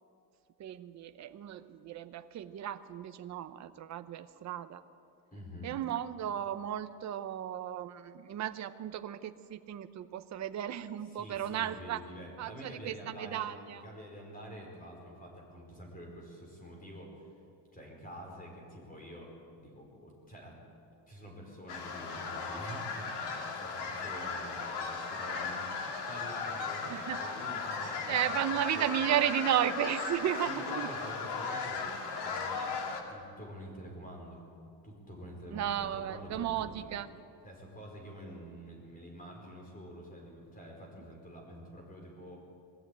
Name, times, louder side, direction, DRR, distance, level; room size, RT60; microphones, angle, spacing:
voice 1, 0.6-4.8 5.6-12.0 12.4-13.8 26.9-27.2 28.1-30.9 35.5-37.1, right 11 dB, 40° right, 10 dB, 0.8 m, -34 dB
voice 2, 5.3-5.7 11.1-17.2 17.7-19.3 19.6-20.6 21.1-28.4 28.7-29.1 30.4-32.7 33.1-34.4 34.8-36.9 37.4-42.4, equal, 20° left, 0 dB, 4.5 m, -47 dB
sound 1, 21.7-33.0, left 4 dB, 70° left, 2.9 m, -37 dB
21.0 x 14.0 x 9.0 m, 2.5 s
cardioid pair, 150°, 42 cm